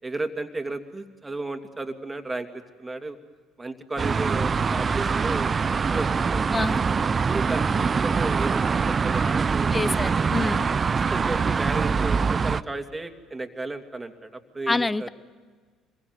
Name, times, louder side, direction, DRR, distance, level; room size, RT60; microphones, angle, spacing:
voice 1, 0.0-3.2 3.6-6.6 7.2-10.1 10.8-15.1, right 2 dB, 20° right, 2.7 m, -34 dB
sound 1, 4.0-12.6, right 5 dB, 35° right, 0.7 m, -24 dB
voice 2, 6.5-6.8 9.7-10.7 14.7-15.1, left 3 dB, 20° left, 0.9 m, -26 dB
26.5 x 22.5 x 9.5 m
hypercardioid pair, 60°, 0 cm